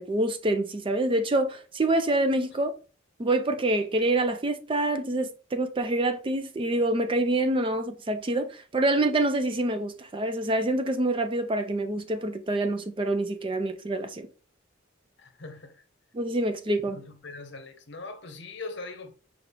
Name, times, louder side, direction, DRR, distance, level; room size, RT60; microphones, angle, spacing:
voice 1, 0.0-2.7 3.2-14.3 16.1-17.0, right 2 dB, 25° right, 0.4 m, -26 dB
voice 2, 15.2-15.8 16.9-19.1, left 3 dB, 60° left, 0.8 m, -41 dB
5.9 x 2.4 x 3.4 m
head